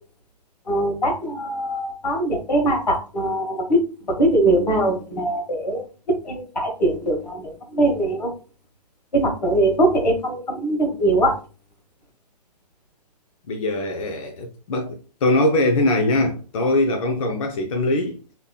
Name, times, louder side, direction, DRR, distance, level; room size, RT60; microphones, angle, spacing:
voice 1, 0.7-3.8 4.1-5.9 6.2-8.3 9.1-11.3, right 1 dB, 80° left, 1.3 m, -21 dB
voice 2, 13.5-18.2, left 1 dB, 50° left, 0.5 m, -22 dB
3.1 x 2.8 x 2.2 m
figure-of-eight pair, 125°, 21 cm